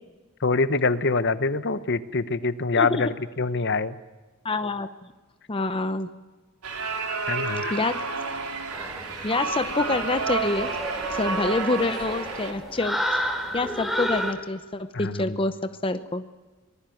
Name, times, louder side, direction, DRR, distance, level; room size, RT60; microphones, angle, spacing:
voice 1, 0.4-4.0 7.3-7.7 14.9-15.4, left 3 dB, 50° left, 13 dB, 1.0 m, -25 dB
voice 2, 2.8-3.1 4.4-4.9 5.5-6.1 7.7-8.0 9.2-10.7 11.1-13.3 13.5-16.2, left 2 dB, 25° left, 9 dB, 0.8 m, -27 dB
sound 1, 6.6-12.5, right 4 dB, 85° right, 3.7 m, -30 dB
sound 2, 8.7-14.3, equal, ahead, 3.5 m, -32 dB
24.5 x 20.0 x 9.2 m, 1.2 s
head